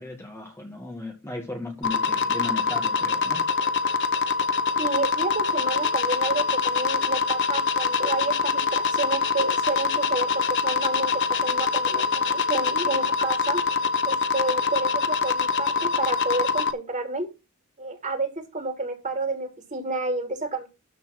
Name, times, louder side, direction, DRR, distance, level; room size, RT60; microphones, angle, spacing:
voice 1, 0.0-3.4, left 2 dB, 10° left, 2.1 m, -36 dB
sound 1, 1.8-16.7, left 5 dB, 55° left, 1.0 m, -24 dB
voice 2, 4.8-13.6 14.0-17.3 17.8-20.7, right 2 dB, 35° right, 3.2 m, -30 dB
13.0 x 4.5 x 6.1 m
head